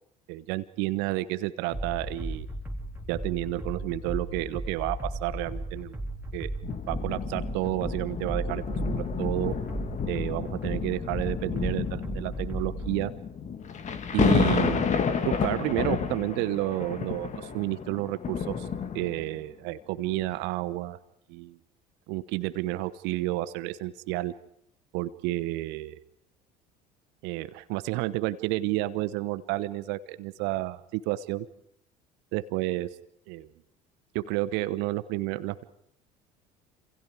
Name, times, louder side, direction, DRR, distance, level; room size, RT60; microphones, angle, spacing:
voice 1, 0.3-2.5 3.1-6.0 6.3-6.5 6.9-9.5 10.1-13.1 14.1-14.9 15.2-18.7 18.9-21.0 21.3-21.6 22.1-24.3 24.9-26.0 27.2-31.5 32.3-32.9 33.3-33.5 34.1-35.6, right 17 dB, 55° right, 14 dB, 1.1 m, -30 dB
sound 1, 1.7-13.0, right 1 dB, 10° right, 3.7 m, -35 dB
sound 2, 6.6-19.4 20.1-20.2, left 6 dB, 35° left, 2.2 m, -31 dB
29.0 x 27.5 x 4.9 m, 0.71 s
figure-of-eight pair, 60°, 21 cm